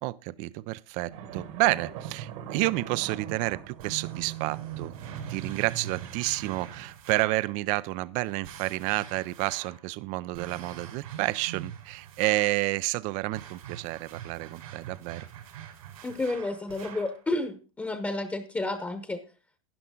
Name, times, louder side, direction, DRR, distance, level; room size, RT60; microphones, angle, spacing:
voice 1, 0.0-4.9 5.3-15.3, right 19 dB, 45° right, 0.5 m, -30 dB
sound 1, 1.1-6.8, right 8 dB, 60° right, 2.0 m, -41 dB
sound 2, 3.8-7.4 8.4-9.8 10.3-12.6 13.3-17.2, right 10 dB, 90° right, 5.0 m, -43 dB
voice 2, 16.0-19.2, left 2 dB, 10° left, 1.0 m, -31 dB
12.0 x 10.5 x 3.7 m
supercardioid pair, 135°, 18 cm